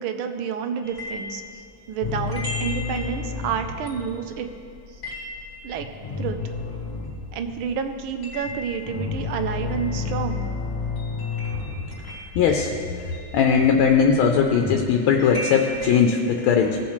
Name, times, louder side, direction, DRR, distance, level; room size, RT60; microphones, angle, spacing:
voice 1, 0.0-4.5 4.9-5.0 5.6-5.9 6.2-6.6 7.3-10.5, right 7 dB, 80° right, 6 dB, 1.5 m, -29 dB
sound 1, 0.8-7.4 7.7-15.9, left 1 dB, 30° left, 2.9 m, -39 dB
sound 2, 2.0-14.8, left 4 dB, 55° left, 1.4 m, -32 dB
voice 2, 12.3-12.7 13.3-16.8, left 6 dB, 90° left, 3 dB, 1.6 m, -19 dB
17.0 x 7.2 x 3.2 m, 2.5 s
omnidirectional pair, 2.2 m